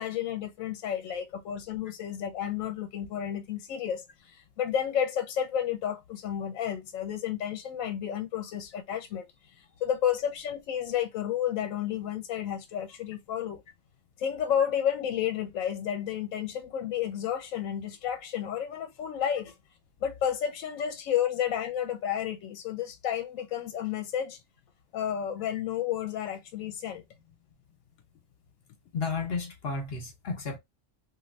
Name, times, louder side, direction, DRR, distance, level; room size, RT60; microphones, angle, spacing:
voice 1, 0.0-13.6 14.2-19.5 20.0-24.4 24.9-27.0, left 9 dB, 80° left, 0.9 m, -31 dB
voice 2, 28.9-30.6, left 4 dB, 50° left, 1.2 m, -33 dB
3.1 x 2.4 x 2.5 m
omnidirectional pair, 1.4 m